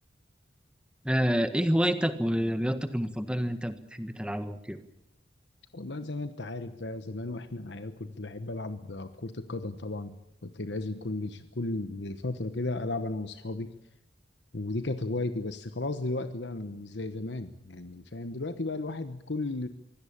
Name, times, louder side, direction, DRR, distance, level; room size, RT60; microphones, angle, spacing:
voice 1, 1.0-4.8, equal, 5° right, 10 dB, 1.5 m, -28 dB
voice 2, 5.7-13.7 14.5-19.7, left 2 dB, 70° left, 10 dB, 1.1 m, -35 dB
24.0 x 17.0 x 8.6 m, 0.78 s
head